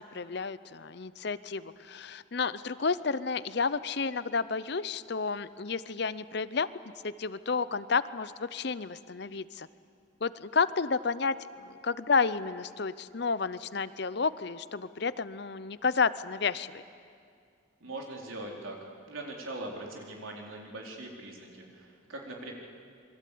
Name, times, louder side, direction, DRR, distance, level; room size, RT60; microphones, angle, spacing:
voice 1, 0.0-6.7 7.0-9.7 10.2-16.8, left 5 dB, 55° left, 15 dB, 0.7 m, -31 dB
voice 2, 17.8-18.8 19.1-22.5, right 2 dB, 85° right, 0 dB, 4.3 m, -41 dB
27.5 x 22.5 x 8.6 m, 2.3 s
head